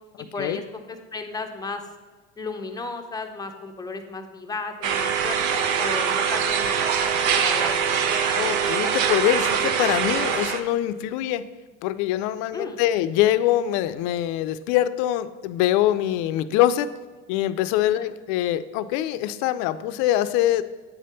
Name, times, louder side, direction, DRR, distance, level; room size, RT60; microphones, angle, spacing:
voice 1, 0.2-1.8 2.4-8.0 12.5-12.8 17.9-18.1, left 3 dB, 10° left, 5 dB, 0.6 m, -35 dB
sound 1, 4.8-10.6, right 7 dB, 70° right, 0.8 m, -23 dB
voice 2, 8.3-11.5 11.8-16.9 17.3-20.6, left 13 dB, 60° left, 13 dB, 0.5 m, -23 dB
8.2 x 3.4 x 5.5 m, 1.4 s
supercardioid pair, 115°, 34 cm